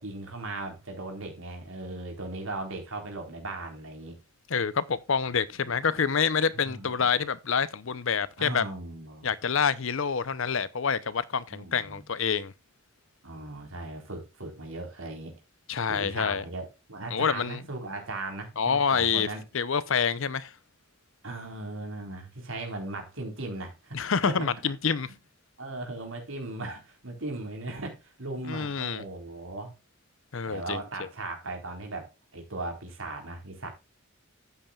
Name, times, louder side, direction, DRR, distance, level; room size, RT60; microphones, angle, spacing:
voice 1, 0.0-4.2 5.6-5.7 6.5-7.1 8.4-9.3 11.5-12.0 13.2-15.3 15.9-19.4 21.2-24.5 25.6-29.7 30.5-33.7, right 2 dB, 65° right, 4.2 m, -38 dB
voice 2, 4.5-8.6 9.2-12.5 15.7-16.4 17.1-17.6 18.6-19.3 19.5-20.5 23.9-25.1 28.5-29.0 30.3-30.8, left 6 dB, 60° left, 0.7 m, -27 dB
12.5 x 8.9 x 2.4 m
head